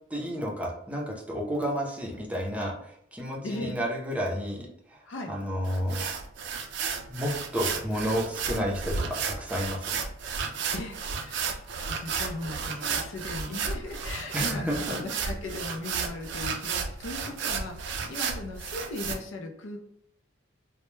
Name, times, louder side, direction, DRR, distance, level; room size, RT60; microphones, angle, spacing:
voice 1, 0.1-5.0 5.3-6.0 7.1-10.0 14.3-15.0, equal, 5° right, -2 dB, 0.5 m, -31 dB
voice 2, 3.4-3.8 5.1-5.3 10.7-19.8, left 2 dB, 85° left, 4 dB, 0.5 m, -38 dB
sound 1, 5.6-19.1, right 5 dB, 65° right, 0.3 m, -33 dB
2.2 x 2.0 x 3.0 m, 0.68 s
head